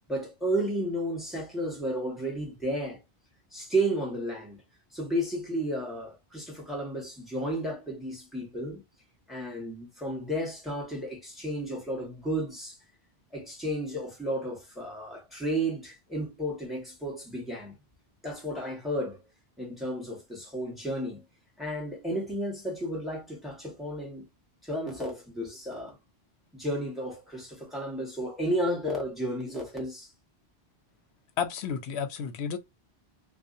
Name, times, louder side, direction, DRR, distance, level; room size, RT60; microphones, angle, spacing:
voice 1, 0.1-3.0 3.5-4.6 4.9-8.8 9.3-12.8 13.3-17.8 18.2-19.2 19.6-21.3 21.6-24.3 24.6-26.0 26.5-30.1, right 1 dB, ahead, 1.1 m, -32 dB
voice 2, 31.4-32.6, left 7 dB, 85° left, 0.8 m, -31 dB
2.6 x 2.3 x 2.5 m
omnidirectional pair, 1.1 m